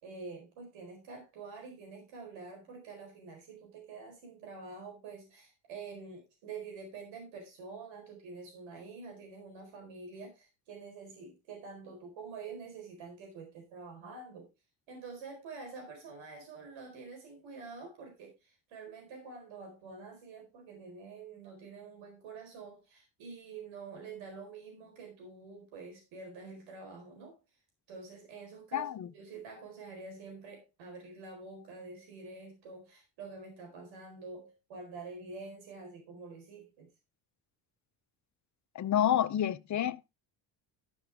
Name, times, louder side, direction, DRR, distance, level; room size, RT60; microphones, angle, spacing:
voice 1, 0.0-14.5 14.9-27.4 27.9-36.9, right 4 dB, 85° right, 4.4 m, -47 dB
voice 2, 28.7-29.1 38.7-40.1, left 10 dB, 40° left, 0.6 m, -29 dB
13.0 x 6.0 x 3.5 m
cardioid pair, 110°, 45 cm